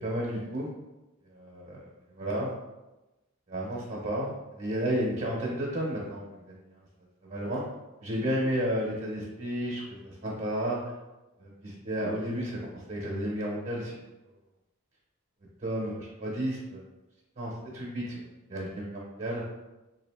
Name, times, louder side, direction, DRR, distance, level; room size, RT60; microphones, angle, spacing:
voice 1, 0.0-0.7 1.3-1.8 2.2-2.5 3.5-6.6 7.2-7.6 8.0-10.8 11.4-14.0 15.6-16.8 17.4-18.2 18.5-19.4, equal, 35° right, -4 dB, 0.7 m, -32 dB
3.7 x 2.6 x 3.4 m, 1.0 s
head